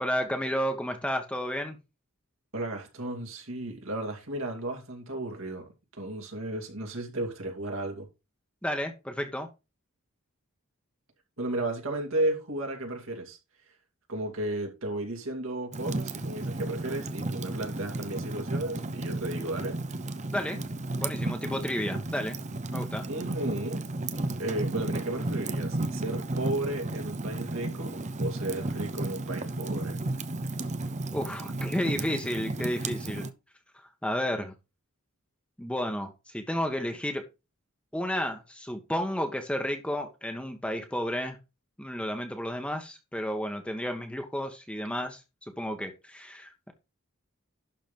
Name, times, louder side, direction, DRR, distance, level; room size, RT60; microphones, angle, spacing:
voice 1, 0.0-1.8 8.6-9.5 20.3-20.6 21.0-22.4 22.7-23.0 31.1-33.3 34.0-34.5 35.6-37.2 37.9-41.4 41.8-45.2 45.6-46.7, equal, 5° left, 1.3 m, -32 dB
voice 2, 2.5-5.6 6.0-8.1 11.4-13.4 14.1-19.8 23.1-23.8 24.4-30.0, right 1 dB, 65° right, 2.7 m, -34 dB
Fire, 15.7-33.3, right 2 dB, 35° right, 0.8 m, -33 dB
11.5 x 4.2 x 5.3 m
head